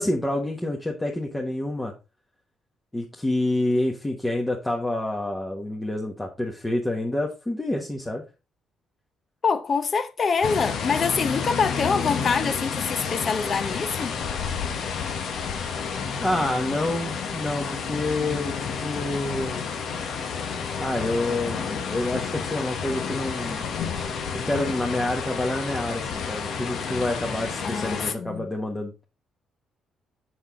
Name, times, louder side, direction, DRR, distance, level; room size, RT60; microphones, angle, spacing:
voice 1, 0.0-1.9 2.9-8.2 16.2-19.6 20.8-23.6 24.4-29.0, left 1 dB, 15° left, 1.3 m, -28 dB
voice 2, 9.4-14.2 27.6-28.5, left 5 dB, 45° left, 0.8 m, -25 dB
sound 1, 10.4-28.1, left 6 dB, 70° left, 1.1 m, -30 dB
6.4 x 6.1 x 3.8 m
cardioid pair, 90°, 0 cm